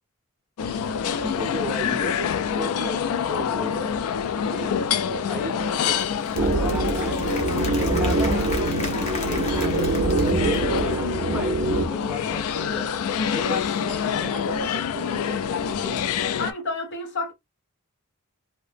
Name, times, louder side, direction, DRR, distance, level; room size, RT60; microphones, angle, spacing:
sound 1, 0.6-16.5, left 7 dB, 70° left, 0.3 m, -27 dB
voice 1, 1.2-3.9 4.3-6.0 6.3-8.5 9.0-12.9 13.2-16.0, equal, 5° right, 0.6 m, -36 dB
Applause / Crowd, 5.7-11.1, left 2 dB, 30° left, 0.6 m, -37 dB
sound 2, 6.3-11.9, right 3 dB, 55° right, 0.5 m, -24 dB
voice 2, 16.4-17.3, left 3 dB, 50° left, 0.9 m, -32 dB
2.7 x 2.0 x 3.2 m
head